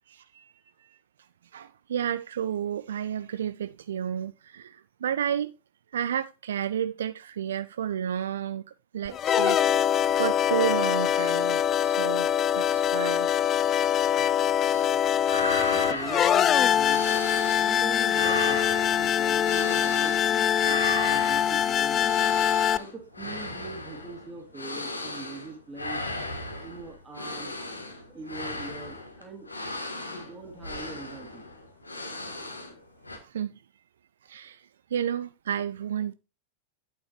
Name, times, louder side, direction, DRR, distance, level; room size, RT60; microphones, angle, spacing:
voice 1, 0.1-0.5 0.8-1.0 1.5-5.5 5.9-9.6 10.2-13.3 21.6-21.8 33.2-33.5 34.2-36.1, right 9 dB, 65° right, 0.3 m, -31 dB
sound 1, 9.1-22.8, left 9 dB, 30° left, 0.3 m, -24 dB
sound 2, 14.7-14.9 15.2-17.8 18.1-20.3 20.6-32.8 33.0-33.2, left 2 dB, 80° left, 1.7 m, -35 dB
voice 2, 15.4-17.1 17.3-20.6 21.0-22.4 22.7-26.2 26.6-29.5 30.0-31.5, right 3 dB, 15° right, 2.4 m, -42 dB
8.7 x 7.5 x 3.0 m
figure-of-eight pair, 90°, 0 cm